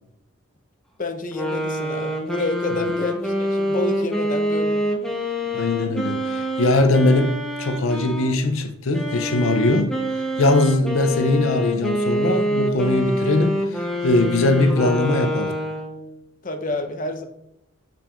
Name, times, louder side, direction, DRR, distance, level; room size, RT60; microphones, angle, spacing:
voice 1, 1.0-4.8 16.4-17.2, left 2 dB, 40° left, 0.7 m, -28 dB
sound 1, 1.3-8.3 8.9-16.1, equal, ahead, 0.9 m, -26 dB
voice 2, 5.5-15.6, left 2 dB, 75° left, 0.5 m, -21 dB
6.9 x 5.7 x 2.5 m
head